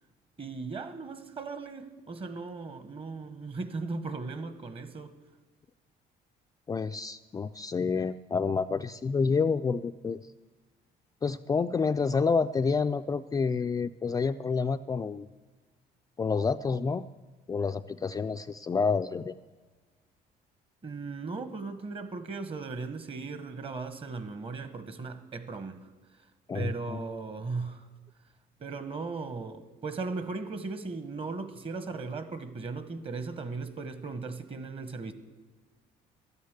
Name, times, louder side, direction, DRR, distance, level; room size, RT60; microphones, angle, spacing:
voice 1, 0.4-5.1 20.8-25.9 26.5-27.9 28.6-35.1, right 4 dB, 35° right, 11 dB, 1.2 m, -37 dB
voice 2, 6.7-10.2 11.2-15.3 16.2-17.0 17.5-19.3 26.5-27.0, left 5 dB, 20° left, 8 dB, 0.3 m, -28 dB
12.0 x 9.6 x 8.0 m, 1.3 s
cardioid pair, 110°, 17 cm